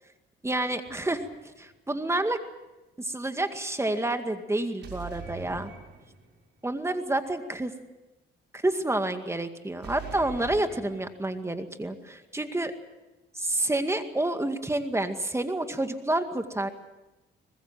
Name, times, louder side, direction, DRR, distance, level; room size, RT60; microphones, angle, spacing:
voice 1, 0.4-1.3 1.6-2.4 3.0-5.7 6.6-7.7 8.5-12.7 13.4-16.7, right 1 dB, 15° right, 7 dB, 2.1 m, -29 dB
sound 1, 0.9-1.5 4.8-6.4 9.8-11.4, right 6 dB, 60° right, 6.3 m, -43 dB
24.0 x 20.5 x 7.6 m, 1.0 s
cardioid pair, 90°, 20 cm